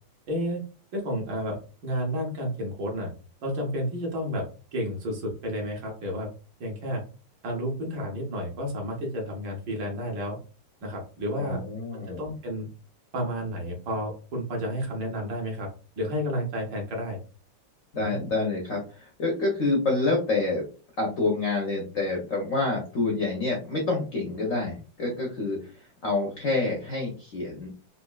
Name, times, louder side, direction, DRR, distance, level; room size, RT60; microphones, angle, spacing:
voice 1, 0.3-0.6 0.9-3.1 3.4-4.5 4.7-6.3 6.6-7.0 7.4-10.4 10.8-11.6 11.9-12.7 13.1-15.7 16.0-17.2 18.0-18.2, equal, 65° right, 0 dB, 1.5 m, -31 dB
voice 2, 11.4-12.3 17.9-20.6 21.0-25.7 26.0-27.7, left 3 dB, 70° left, -1 dB, 0.7 m, -27 dB
4.3 x 2.5 x 2.3 m, 0.36 s
omnidirectional pair, 2.4 m